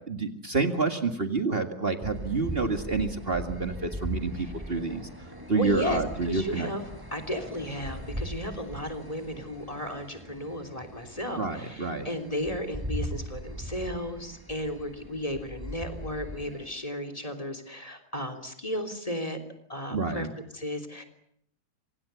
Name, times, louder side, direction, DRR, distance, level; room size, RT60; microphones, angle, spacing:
voice 1, 0.1-5.0 5.5-6.7 11.4-12.1 19.9-20.3, right 3 dB, 40° right, 6 dB, 2.1 m, -28 dB
sound 1, 2.0-16.7, right 1 dB, 15° right, 5.4 m, -40 dB
voice 2, 4.3-4.8 5.5-6.8 7.1-19.4 19.7-20.3 20.5-21.0, left 1 dB, 20° left, 10 dB, 3.4 m, -34 dB
27.5 x 25.5 x 7.0 m, 0.71 s
omnidirectional pair, 1.6 m